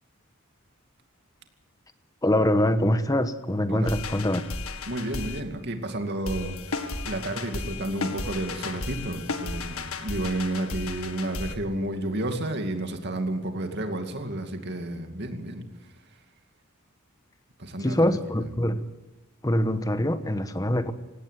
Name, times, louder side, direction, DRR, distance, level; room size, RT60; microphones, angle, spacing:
voice 1, 2.2-4.4 17.8-18.9 19.4-20.9, left 1 dB, 15° left, 10 dB, 1.2 m, -24 dB
sound 1, 3.8-5.4 6.3-11.5, left 3 dB, 85° left, 1.9 m, -34 dB
voice 2, 4.9-15.6 17.6-18.5, right 1 dB, 50° right, 6 dB, 2.5 m, -31 dB
18.5 x 17.0 x 8.4 m, 1.1 s
head